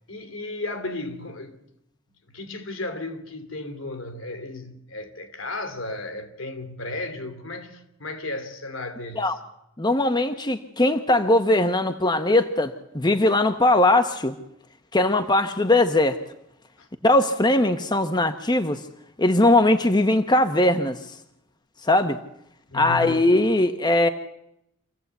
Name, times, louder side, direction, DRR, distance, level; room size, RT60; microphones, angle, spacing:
voice 1, 0.1-1.6 2.3-9.3 16.8-16.9 22.7-23.2, left 2 dB, 70° left, 3.0 m, -34 dB
voice 2, 9.8-14.4 14.9-16.2 17.0-18.8 19.2-21.2 21.8-22.2 22.7-24.1, left 1 dB, 20° left, 1.0 m, -20 dB
27.0 x 16.0 x 8.2 m
head